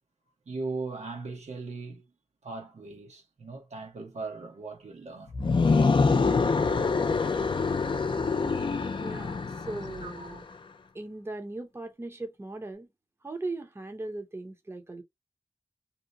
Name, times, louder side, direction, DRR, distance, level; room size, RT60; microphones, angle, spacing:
voice 1, 0.5-2.1 2.4-5.4 10.0-10.4, right 3 dB, 85° right, 0.9 m, -38 dB
sound 1, 5.3-10.4, left 4 dB, 45° left, 0.5 m, -25 dB
voice 2, 9.0-10.4 10.9-12.9 13.2-15.0, right 2 dB, 20° right, 0.6 m, -38 dB
2.8 x 2.1 x 2.6 m
wide cardioid pair, 85°, 11 cm